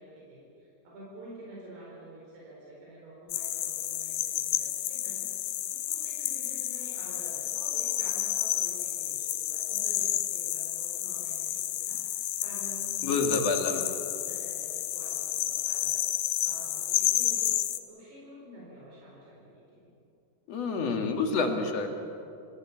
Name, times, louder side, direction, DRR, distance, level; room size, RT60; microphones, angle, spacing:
voice 1, 0.0-13.8 14.1-17.6 17.9-19.9, right 1 dB, 80° right, -4 dB, 6.5 m, -49 dB
sound 1, 3.3-17.8, left 14 dB, 90° left, 2.9 m, -31 dB
voice 2, 13.0-13.8 20.5-21.9, left 4 dB, 50° left, 4 dB, 2.4 m, -28 dB
27.5 x 15.5 x 8.5 m, 2.6 s
omnidirectional pair, 4.6 m